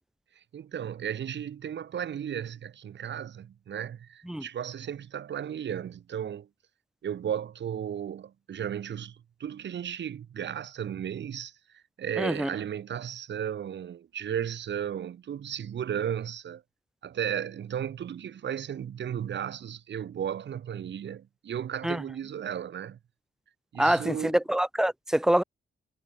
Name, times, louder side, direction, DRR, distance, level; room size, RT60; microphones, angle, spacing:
voice 1, 0.4-6.5 7.0-16.6 17.0-23.0 23.7-24.4, right 9 dB, 80° right, 6.9 m, -35 dB
voice 2, 12.2-12.5 21.8-22.0 23.8-25.4, right 1 dB, 5° right, 0.7 m, -25 dB
wide cardioid pair, 160°, 18 cm